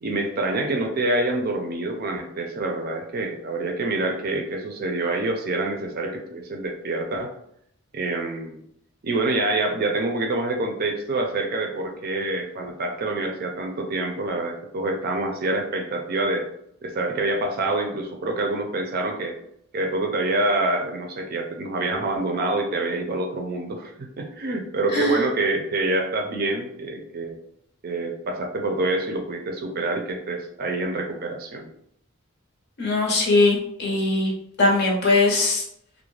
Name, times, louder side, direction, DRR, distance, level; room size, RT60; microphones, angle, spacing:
voice 1, 0.0-7.3 7.9-8.6 9.0-16.4 16.8-19.3 19.7-27.4 27.8-31.7, right 2 dB, 45° right, 3 dB, 0.4 m, -26 dB
voice 2, 32.8-34.3 34.6-35.6, left 2 dB, 50° left, -1 dB, 0.7 m, -20 dB
2.4 x 2.1 x 3.1 m, 0.72 s
head